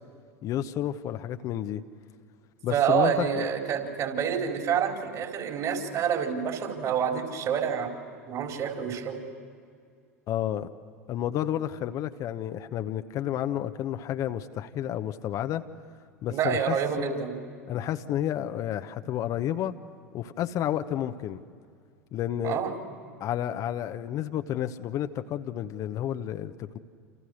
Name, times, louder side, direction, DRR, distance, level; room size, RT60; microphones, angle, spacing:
voice 1, 0.4-1.8 2.6-3.5 10.3-10.7 11.1-15.6 16.2-17.2 17.7-19.7 20.1-21.4 22.1-22.6 23.2-26.8, left 11 dB, 45° left, 8 dB, 1.1 m, -31 dB
voice 2, 2.7-7.9 8.3-9.2 16.3-17.4 22.4-22.7, right 8 dB, 45° right, 2 dB, 4.6 m, -27 dB
29.0 x 28.0 x 6.6 m, 2.2 s
figure-of-eight pair, 80°, 8 cm